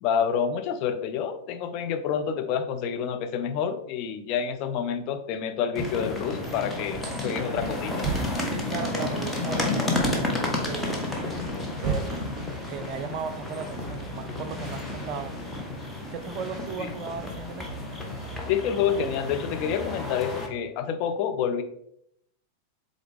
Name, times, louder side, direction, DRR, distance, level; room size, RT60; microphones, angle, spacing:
voice 1, 0.0-8.1 16.8-16.9 18.5-21.6, left 7 dB, 40° left, 7 dB, 0.7 m, -28 dB
sound 1, 5.7-20.5, left 2 dB, 5° left, 1.2 m, -31 dB
sound 2, 6.6-15.1, right 5 dB, 25° right, 1.9 m, -38 dB
voice 2, 8.5-11.1 11.8-15.3 16.1-17.8, right 6 dB, 40° right, 10 dB, 0.5 m, -37 dB
7.8 x 4.1 x 3.4 m, 0.74 s
figure-of-eight pair, 90°, 0 cm